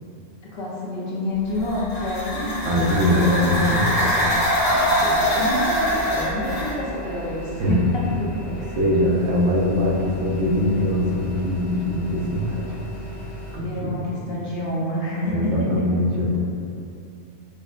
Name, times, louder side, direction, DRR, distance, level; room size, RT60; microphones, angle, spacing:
voice 1, 0.5-2.5 3.1-3.7 3.9-4.4 4.7-8.8 13.6-15.7, left 1 dB, 65° left, -5 dB, 0.8 m, -28 dB
sound 1, 1.5-6.8, equal, 80° left, 1.4 m, -23 dB
voice 2, 2.6-3.9 7.6-7.8 8.5-12.8 13.1-13.3 13.5-14.1 15.1-16.4, left 1 dB, 75° right, -3 dB, 0.9 m, -22 dB
sound 2, 5.8-13.6, left 1 dB, 40° right, 1.3 m, -38 dB
4.9 x 2.1 x 2.3 m, 2.6 s
omnidirectional pair, 1.2 m